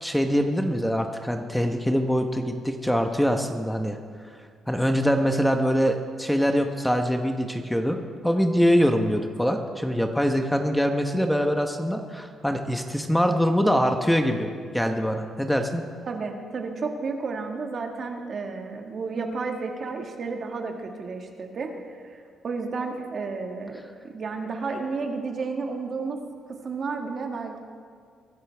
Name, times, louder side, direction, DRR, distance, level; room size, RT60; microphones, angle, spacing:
voice 1, 0.0-4.0 4.7-8.0 8.2-14.5 14.7-15.8, equal, 5° left, 5 dB, 1.0 m, -23 dB
voice 2, 16.1-23.8 24.0-26.2 26.6-27.6, right 4 dB, 50° right, 3 dB, 1.7 m, -32 dB
23.0 x 11.0 x 3.5 m, 2.1 s
cardioid pair, 90°, 0 cm